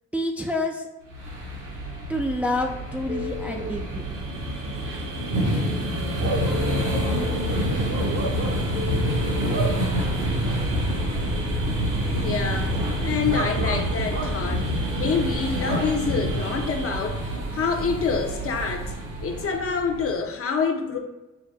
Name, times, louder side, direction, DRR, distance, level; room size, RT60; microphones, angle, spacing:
voice 1, 0.1-0.9 2.1-4.0, left 1 dB, 5° right, 2 dB, 0.4 m, -28 dB
sound 1, 1.1-20.1, equal, 85° right, 1.4 m, -27 dB
Telephone, 3.1-3.6 6.5-7.5 8.8-9.6, left 9 dB, 80° left, 1.0 m, -34 dB
Bark / Cricket, 4.0-17.3, right 3 dB, 45° right, 0.8 m, -36 dB
voice 2, 12.1-18.9 19.2-21.0, left 5 dB, 50° left, 4 dB, 0.7 m, -27 dB
5.6 x 2.2 x 3.3 m, 1.0 s
cardioid pair, 90°, 30 cm